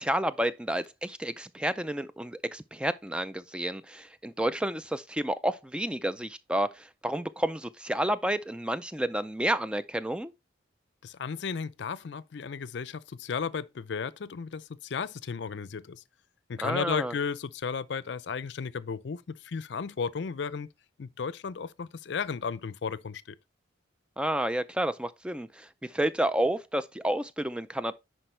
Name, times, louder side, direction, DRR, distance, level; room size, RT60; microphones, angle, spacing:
voice 1, 0.0-10.3 16.6-17.1 24.2-27.9, right 1 dB, 5° right, 0.3 m, -30 dB
voice 2, 11.0-16.0 16.5-20.7 21.0-23.4, left 5 dB, 60° left, 0.4 m, -34 dB
10.0 x 4.5 x 3.2 m
head